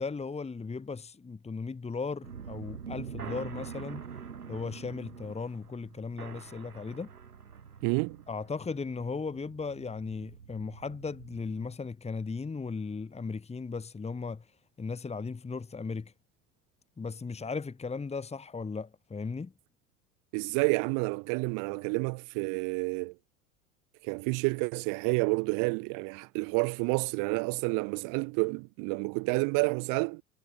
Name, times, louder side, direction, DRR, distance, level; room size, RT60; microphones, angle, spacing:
voice 1, 0.0-4.0 4.5-7.1 8.3-14.4 14.8-16.1 17.0-19.5, left 4 dB, 15° left, 2.5 m, -36 dB
sound 1, 2.2-11.7, right 6 dB, 90° right, 5.4 m, -45 dB
voice 2, 7.8-8.2 20.3-23.2 24.0-30.2, right 34 dB, 45° right, 0.7 m, -29 dB
hypercardioid pair, 85°, 44 cm